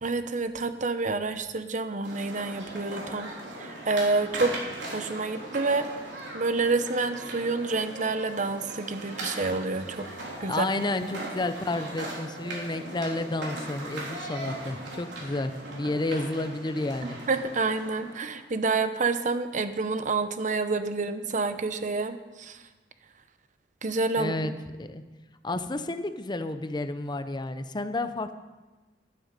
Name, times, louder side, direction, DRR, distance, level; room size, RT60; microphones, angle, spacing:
voice 1, 0.0-3.3 3.6-4.6 4.9-5.8 6.3-10.1 10.4-10.7 17.3-22.6 23.8-24.6, right 3 dB, 45° right, 10 dB, 0.8 m, -28 dB
sound 1, 2.0-18.5, right 1 dB, 90° right, 3.6 m, -39 dB
voice 2, 10.5-17.2 24.2-24.5 24.8-25.0 25.4-28.3, left 2 dB, 25° left, 10 dB, 0.7 m, -31 dB
12.0 x 11.5 x 5.2 m, 1.2 s
head